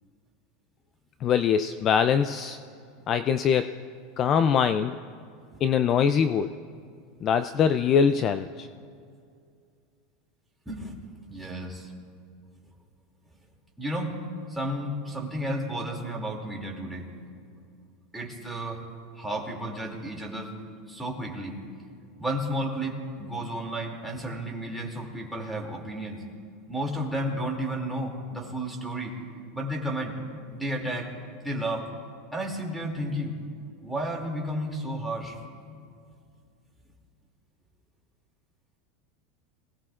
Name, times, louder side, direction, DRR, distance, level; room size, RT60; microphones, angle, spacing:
voice 1, 1.2-2.6 3.1-3.8 4.2-5.0 5.6-6.5 7.2-8.7, left 7 dB, 30° left, 11 dB, 0.4 m, -23 dB
voice 2, 11.3-11.9 13.8-14.2 14.5-17.1 18.1-18.8 19.1-20.5 20.9-21.6 22.2-26.2 26.7-29.1 29.5-30.1 30.5-31.1 31.4-31.9 32.3-33.3 33.8-35.6, right 1 dB, ahead, -2 dB, 2.6 m, -32 dB
25.5 x 17.5 x 2.5 m, 2.3 s
supercardioid pair, 145°, 0 cm